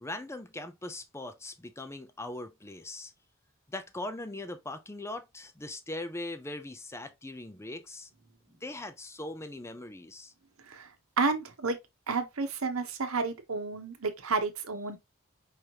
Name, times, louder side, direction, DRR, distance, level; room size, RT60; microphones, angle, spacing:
voice 1, 0.0-3.1 3.7-8.1 8.6-10.3, left 2 dB, 15° left, 0.5 m, -40 dB
voice 2, 11.2-11.8 12.1-15.0, right 4 dB, 75° right, 0.9 m, -31 dB
4.9 x 3.0 x 2.8 m
head